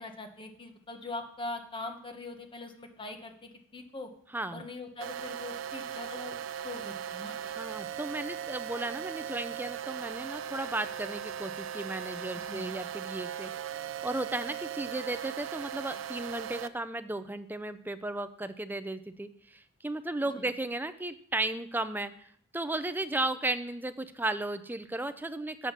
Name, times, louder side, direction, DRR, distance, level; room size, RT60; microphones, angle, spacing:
voice 1, 0.0-4.1 4.5-6.4 6.6-7.4 12.5-12.7 20.2-20.5, left 2 dB, 25° left, 5 dB, 1.2 m, -42 dB
sound 1, 5.0-16.7, right 9 dB, 80° right, 0.5 m, -38 dB
voice 2, 7.4-13.5 14.0-25.7, right 2 dB, 10° right, 11 dB, 0.5 m, -35 dB
7.4 x 7.2 x 5.9 m, 0.62 s
head